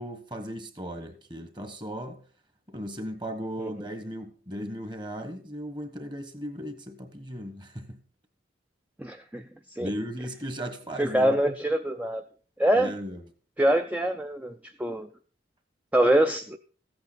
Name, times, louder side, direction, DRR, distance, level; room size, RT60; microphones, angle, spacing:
voice 1, 0.0-2.2 2.7-8.0 9.8-11.4 12.8-13.2, equal, 25° right, 1.4 m, -36 dB
voice 2, 9.0-9.4 9.8-9.9 11.0-12.2 12.6-12.9 13.6-15.1 15.9-16.6, right 1 dB, 10° right, 0.5 m, -24 dB
14.5 x 8.7 x 4.2 m
head